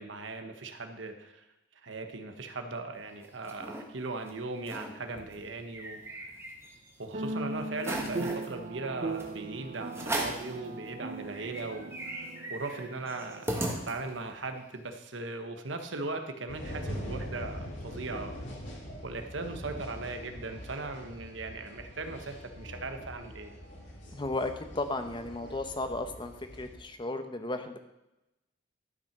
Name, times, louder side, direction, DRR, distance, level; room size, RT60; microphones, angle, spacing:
voice 1, 0.0-1.4 1.8-6.0 7.0-13.4 13.9-18.4 19.0-23.5, right 3 dB, 75° right, 6 dB, 1.2 m, -38 dB
sound 1, 3.0-3.8 4.3-4.4 4.6-4.9 5.3-6.9 7.3-7.4 7.8-8.5 9.2-9.3 9.9-10.5 11.0-11.1 11.3-14.3, right 1 dB, 15° right, 1.5 m, -37 dB
sound 2, 5.2-5.6 7.1-13.9, right 2 dB, 40° right, 0.6 m, -39 dB
sound 3, 16.5-26.8, equal, 75° left, 2.5 m, -43 dB
voice 2, 24.1-27.8, left 2 dB, 25° left, 7 dB, 0.8 m, -34 dB
12.5 x 5.8 x 5.9 m, 0.94 s
head